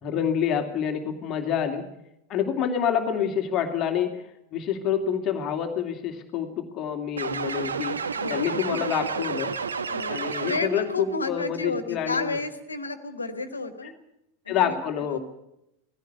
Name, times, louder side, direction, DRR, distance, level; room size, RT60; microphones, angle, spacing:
voice 1, 0.0-1.8 2.3-4.2 4.5-8.0 8.3-9.5 10.1-12.4 14.5-15.2, left 8 dB, 35° left, 4 dB, 2.6 m, -27 dB
sound 1, 7.2-11.0, right 5 dB, 75° right, 1.2 m, -31 dB
voice 2, 8.1-8.8 9.9-13.9 14.5-14.8 15.1-15.2, left 3 dB, 80° left, 10 dB, 2.1 m, -32 dB
19.5 x 16.5 x 8.2 m, 0.85 s
figure-of-eight pair, 85°, 0 cm